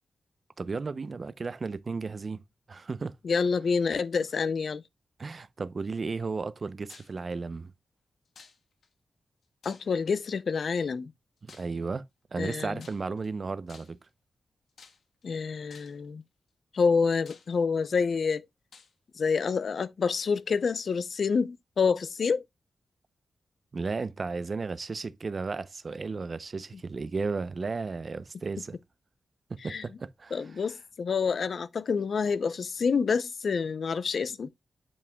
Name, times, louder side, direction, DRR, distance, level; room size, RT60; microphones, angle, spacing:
voice 1, 0.6-2.4 2.7-3.1 5.2-7.7 11.4-12.0 12.3-14.0 23.7-28.8 29.5-30.4, right 4 dB, 40° right, 0.6 m, -34 dB
voice 2, 3.2-4.8 9.6-11.1 12.4-12.8 15.2-16.2 16.7-18.5 19.2-22.4 29.6-29.8 30.3-34.5, left 5 dB, 60° left, 0.6 m, -27 dB
sound 1, 6.9-7.2 8.4-8.9 9.6-10.2 11.5-11.8 12.8-13.3 13.7-14.1 14.8-15.2 15.7-16.1 16.7-16.8 17.3-17.9 18.7-18.9, left 5 dB, 75° left, 1.4 m, -53 dB
8.5 x 7.1 x 2.2 m
wide cardioid pair, 130°, 0 cm